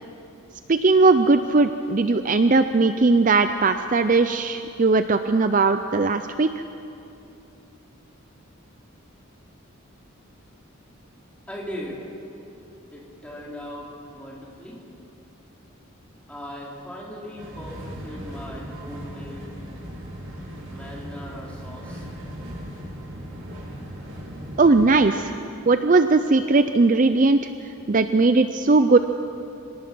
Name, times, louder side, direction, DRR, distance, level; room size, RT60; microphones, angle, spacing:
voice 1, 0.7-6.5 24.6-25.3 25.7-27.4 27.9-29.0, right 3 dB, 40° right, 9 dB, 0.5 m, -18 dB
voice 2, 11.5-12.1 12.9-14.8 16.3-19.5 20.7-22.1, equal, 5° left, -4 dB, 3.7 m, -38 dB
sound 1, 17.4-24.9, equal, 80° right, 6.2 m, -38 dB
26.0 x 18.5 x 6.2 m, 2.8 s
head